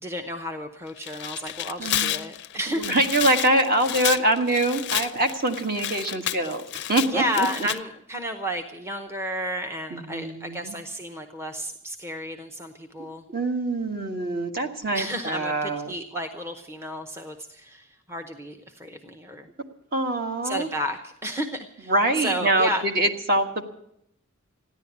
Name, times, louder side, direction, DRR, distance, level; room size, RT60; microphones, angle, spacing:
voice 1, 0.0-2.8 7.1-13.2 14.9-19.5 20.4-22.8, equal, 10° right, 5 dB, 0.8 m, -32 dB
Tearing, 0.9-7.8, left 13 dB, 55° left, 0.5 m, -31 dB
voice 2, 1.8-2.1 2.7-6.6 6.9-7.5 9.9-10.7 13.3-15.9 19.9-20.7 21.9-23.6, right 1 dB, 45° right, 5 dB, 1.5 m, -24 dB
15.0 x 10.5 x 8.2 m, 0.77 s
head